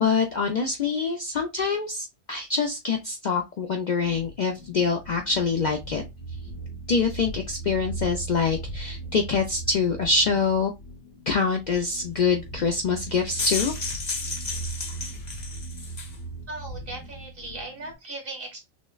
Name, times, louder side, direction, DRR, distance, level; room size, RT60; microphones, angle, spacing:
voice 1, 0.0-6.0 6.9-10.7 11.3-13.8, left 5 dB, 55° left, 4 dB, 0.5 m, -25 dB
sound 1, 4.0-17.9, right 3 dB, 75° left, 1.6 m, -38 dB
sound 2, 13.1-16.2, left 4 dB, 40° left, 1.0 m, -32 dB
voice 2, 16.5-18.6, right 2 dB, 50° right, 1 dB, 1.7 m, -38 dB
6.1 x 2.1 x 2.3 m, 0.22 s
omnidirectional pair, 1.2 m